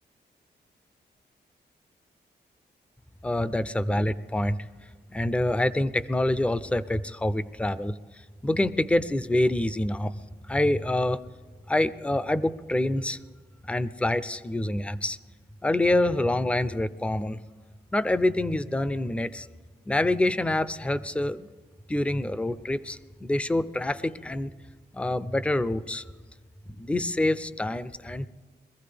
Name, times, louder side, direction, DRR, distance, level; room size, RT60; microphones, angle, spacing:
voice 1, 3.2-4.6 5.1-7.9 8.4-10.1 10.5-11.2 11.7-13.2 13.7-15.2 15.6-17.4 17.9-19.5 19.9-21.5 21.9-24.5 24.9-26.0 26.7-28.3, left 1 dB, 5° left, 15 dB, 0.4 m, -26 dB
23.5 x 15.0 x 3.4 m, 1.4 s
cardioid pair, 105°, 18 cm